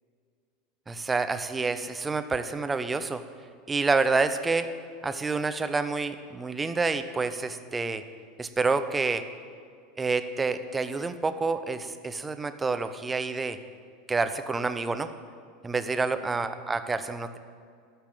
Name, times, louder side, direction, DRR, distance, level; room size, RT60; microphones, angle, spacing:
voice 1, 0.9-3.2 3.7-4.7 5.0-8.0 8.4-9.3 10.0-13.6 14.1-15.1 15.6-17.4, right 4 dB, 15° right, 10 dB, 0.7 m, -28 dB
13.5 x 5.7 x 7.9 m, 2.3 s
figure-of-eight pair, 80°, 0 cm